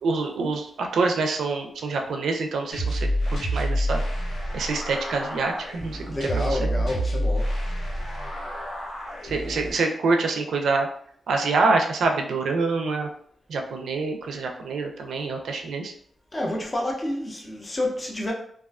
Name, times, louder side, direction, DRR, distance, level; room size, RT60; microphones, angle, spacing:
voice 1, 0.0-3.1 3.5-4.0 4.5-6.7 9.2-10.9 11.3-13.1 13.5-15.9, right 3 dB, 80° right, 0.4 m, -26 dB
sound 1, 2.7-9.7, equal, 75° left, 0.9 m, -28 dB
voice 2, 6.1-7.6 16.3-18.3, left 1 dB, 20° left, 0.4 m, -29 dB
2.3 x 2.3 x 2.3 m
wide cardioid pair, 155°, 0 cm